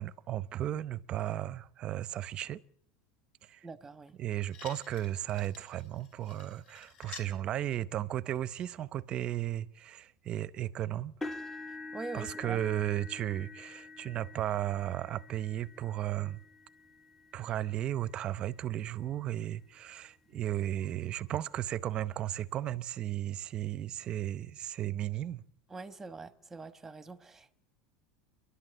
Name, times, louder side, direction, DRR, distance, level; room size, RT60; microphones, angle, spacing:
voice 1, 0.0-2.6 3.4-3.7 4.2-11.1 12.1-16.4 17.3-25.4, right 12 dB, 40° right, 0.7 m, -35 dB
voice 2, 3.6-4.2 11.9-12.6 25.7-27.5, right 3 dB, 10° right, 1.2 m, -44 dB
sound 1, 4.1-4.2 4.5-7.3 8.3-8.4, left 6 dB, 40° left, 4.2 m, -51 dB
sound 2, 11.2-19.2 19.9-20.1 20.5-20.6 22.0-22.1, left 2 dB, 15° left, 1.0 m, -47 dB
29.5 x 11.5 x 8.0 m
supercardioid pair, 130°, 3 cm